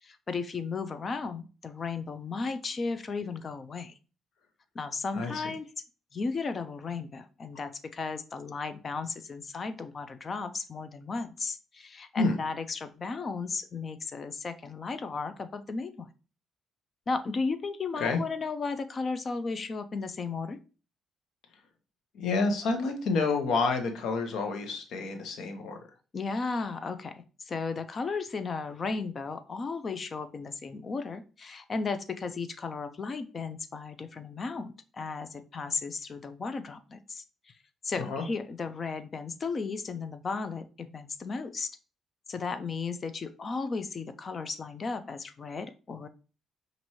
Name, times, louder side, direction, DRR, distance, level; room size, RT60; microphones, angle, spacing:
voice 1, 0.0-3.9 4.7-5.7 6.1-16.1 17.1-20.6 26.1-37.5 37.8-41.8 42.3-46.1, left 4 dB, 35° left, 10 dB, 0.5 m, -35 dB
voice 2, 5.2-5.5 12.2-12.4 18.0-18.2 22.1-25.8 38.0-38.2, left 3 dB, 70° left, 5 dB, 0.9 m, -29 dB
5.4 x 2.6 x 3.0 m, 0.35 s
cardioid pair, 130°, 0 cm